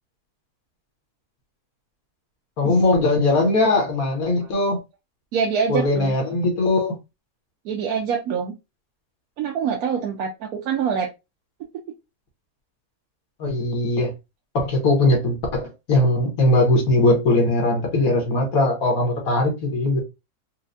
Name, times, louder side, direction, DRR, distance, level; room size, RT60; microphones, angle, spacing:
voice 1, 2.6-4.8 5.7-7.0 13.4-14.1 14.6-20.0, left 2 dB, 65° left, 1.6 m, -20 dB
voice 2, 5.3-6.2 7.6-8.5 9.4-11.1, right 6 dB, 75° right, 1.1 m, -25 dB
4.4 x 2.3 x 2.6 m
omnidirectional pair, 1.6 m